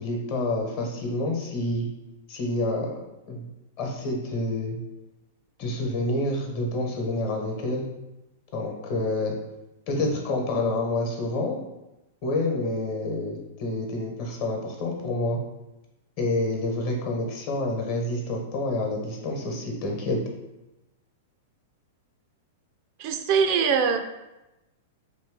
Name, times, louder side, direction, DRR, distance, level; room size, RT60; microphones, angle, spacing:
voice 1, 0.0-1.9 2.3-2.9 3.3-3.5 3.8-4.8 5.6-7.9 8.5-9.3 9.9-11.6 12.2-15.4 16.2-20.2, left 2 dB, 50° left, 0 dB, 1.0 m, -28 dB
voice 2, 23.0-24.0, right 6 dB, 50° right, 7 dB, 0.4 m, -22 dB
2.9 x 2.7 x 3.7 m, 0.98 s
hypercardioid pair, 105°, 0 cm